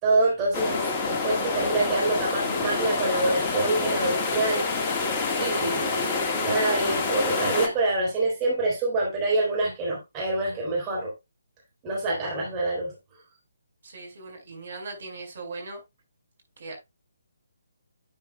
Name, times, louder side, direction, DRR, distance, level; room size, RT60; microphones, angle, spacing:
voice 1, 0.0-4.6 5.4-11.1 11.8-12.9, right 2 dB, 20° right, 4.1 m, -26 dB
sound 1, 0.5-7.7, left 4 dB, 25° left, 1.7 m, -27 dB
voice 2, 13.8-15.8 16.6-16.7, right 3 dB, 55° right, 5.1 m, -39 dB
10.5 x 8.6 x 2.3 m
figure-of-eight pair, 140°, 0 cm